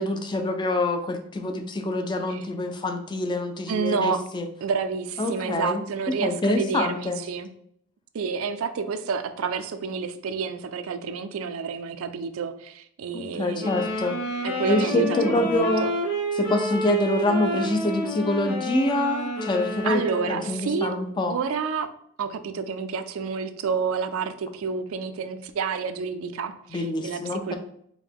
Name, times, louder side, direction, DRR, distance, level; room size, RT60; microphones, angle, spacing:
voice 1, 0.0-4.5 5.2-5.8 6.2-7.2 13.1-14.2 14.7-15.9 16.3-20.0 20.3-21.3 26.7-27.5, left 1 dB, 20° left, 6 dB, 0.4 m, -26 dB
voice 2, 3.7-4.2 4.6-7.5 8.1-13.9 14.4-15.9 19.8-20.9 21.3-21.9 22.2-27.5, right 5 dB, 85° right, 10 dB, 0.4 m, -29 dB
sound 1, 13.6-20.6, equal, 55° left, 0.8 m, -29 dB
4.7 x 2.2 x 3.5 m, 0.69 s
head